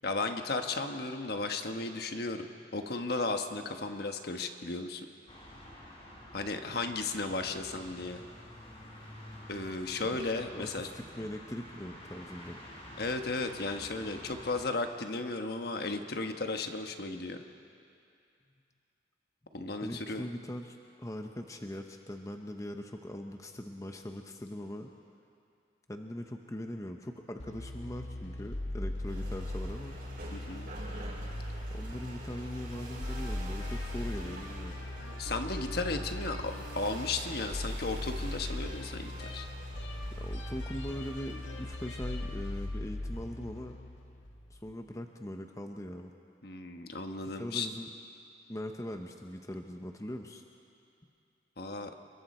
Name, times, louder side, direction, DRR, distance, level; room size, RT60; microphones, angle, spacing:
voice 1, 0.0-5.1 6.3-8.2 9.5-10.9 13.0-17.4 19.5-20.3 30.3-30.7 35.2-39.5 46.4-47.7 51.6-51.9, left 3 dB, 55° left, 6 dB, 1.2 m, -35 dB
sound 1, 5.3-14.7, equal, 35° left, 4.1 m, -49 dB
voice 2, 10.5-12.6 19.8-24.9 25.9-30.0 31.7-34.8 40.2-43.8 44.5-46.1 47.3-47.9 48.5-50.4, left 1 dB, 15° left, 4 dB, 0.8 m, -41 dB
sound 2, 27.4-44.7, left 1 dB, 85° left, 1.7 m, -39 dB
sound 3, 29.0-42.7, right 2 dB, 50° right, 5.7 m, -49 dB
29.0 x 22.5 x 4.4 m, 2.5 s
head